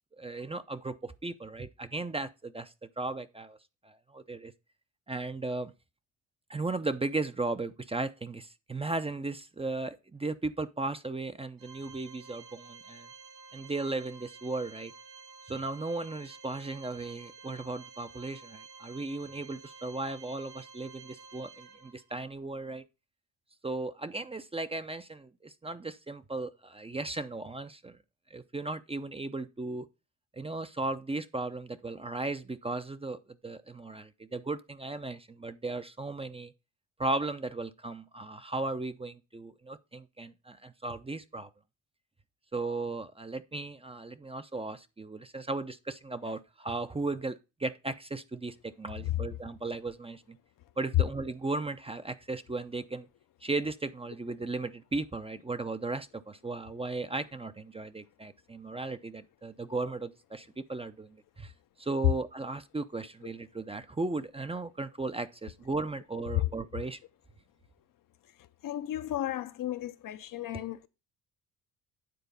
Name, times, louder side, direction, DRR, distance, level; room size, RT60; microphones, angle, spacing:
voice 1, 0.2-3.6 3.8-4.5 5.1-5.7 6.5-13.1 13.5-14.9 15.5-22.8 23.6-28.0 28.3-29.9 30.3-36.5 37.0-41.5 42.5-50.4 50.8-53.1 53.4-61.5 61.8-67.0 70.5-70.6, right 3 dB, 15° right, 0.6 m, -36 dB
Organ, 11.6-22.2, right 5 dB, 60° right, 1.5 m, -51 dB
voice 2, 68.6-70.9, left 13 dB, 55° left, 0.7 m, -33 dB
9.3 x 3.9 x 5.2 m
supercardioid pair, 80°, 39 cm